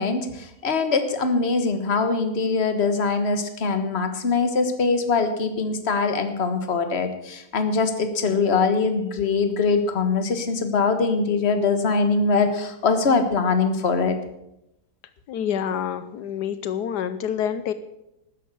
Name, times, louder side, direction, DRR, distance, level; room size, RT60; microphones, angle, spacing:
voice 1, 0.0-14.2, left 4 dB, 40° left, 8 dB, 1.6 m, -22 dB
voice 2, 15.3-17.7, left 8 dB, 80° left, 12 dB, 1.3 m, -27 dB
12.5 x 10.0 x 7.0 m, 0.86 s
omnidirectional pair, 1.7 m